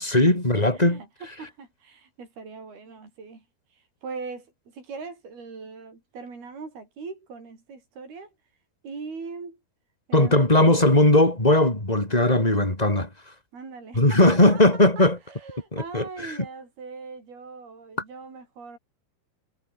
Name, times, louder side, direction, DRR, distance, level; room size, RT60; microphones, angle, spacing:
voice 1, 0.0-1.0 10.1-13.1 14.0-15.2 15.7-16.3, left 1 dB, 10° left, 5.2 m, -19 dB
voice 2, 0.8-3.5 3.7-8.3 8.8-9.6 10.1-10.9 12.1-12.2 13.5-18.8, right 4 dB, 70° right, 8.9 m, -40 dB
omnidirectional pair, 4.5 m